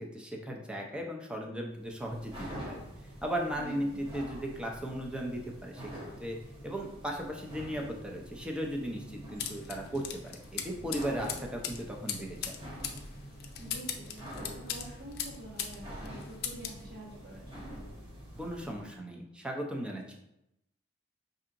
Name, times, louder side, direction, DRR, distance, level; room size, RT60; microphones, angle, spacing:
voice 1, 0.0-2.8 3.2-5.9 6.2-6.4 6.6-12.6 18.4-20.1, equal, 5° right, 0 dB, 0.5 m, -37 dB
sound 1, 1.7-18.9, equal, 30° right, 0.9 m, -46 dB
voice 2, 3.6-4.0 13.6-17.8, right 1 dB, 55° right, -5 dB, 1.3 m, -47 dB
sound 2, 9.4-15.8 16.0-16.8, left 8 dB, 55° left, 0.5 m, -39 dB
5.5 x 2.8 x 2.5 m, 0.85 s
head